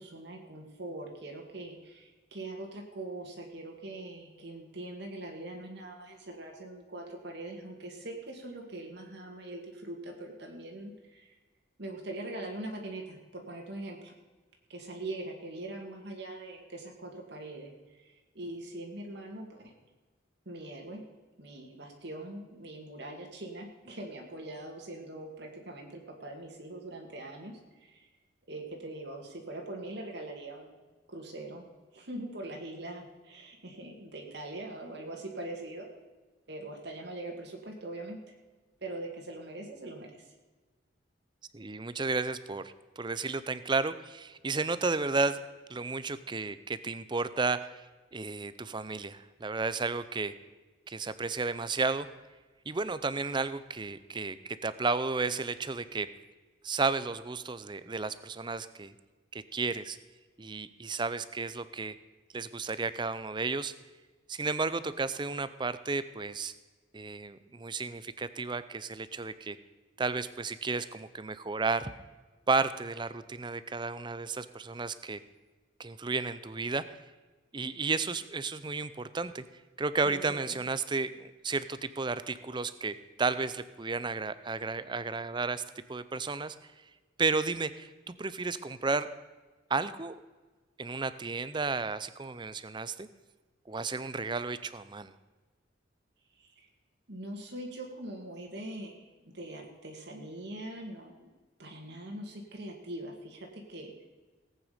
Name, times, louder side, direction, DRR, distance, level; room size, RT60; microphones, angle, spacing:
voice 1, 0.0-11.3 11.8-14.1 14.7-19.7 20.5-21.0 21.4-28.1 28.5-30.8 31.1-31.7 31.9-35.9 36.5-38.3 38.8-40.3 80.1-80.6 96.3-96.7 97.1-101.3 101.6-104.0, right 1 dB, 55° right, 1 dB, 2.1 m, -42 dB
voice 2, 41.5-45.4 45.7-47.8 48.1-50.3 50.9-52.1 52.7-56.1 56.6-58.9 59.3-60.0 60.4-62.0 62.3-63.7 64.3-66.5 66.9-69.6 70.0-71.9 72.5-75.2 75.8-76.8 77.5-79.4 79.8-85.6 85.9-86.6 87.2-89.1 89.7-90.2 90.8-93.1 93.7-95.1, right 4 dB, 25° right, 14 dB, 0.5 m, -33 dB
18.5 x 9.0 x 5.1 m, 1.3 s
head